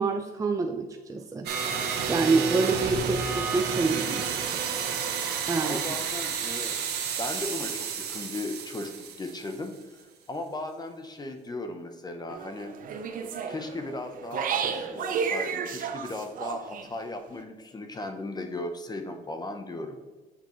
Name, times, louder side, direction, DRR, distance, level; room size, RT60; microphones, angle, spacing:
voice 1, 0.0-1.5 2.1-4.2 5.5-5.8, right 4 dB, 20° right, 4 dB, 0.5 m, -26 dB
sound 1, 1.5-9.8, right 6 dB, 80° right, 1.3 m, -31 dB
voice 2, 5.6-6.8 7.2-12.7 13.5-20.0, left 2 dB, 25° left, 6 dB, 0.9 m, -37 dB
sound 2, 12.3-16.9, right 6 dB, 55° right, 0.8 m, -32 dB
7.9 x 6.6 x 3.1 m, 1.3 s
cardioid pair, 110°, 17 cm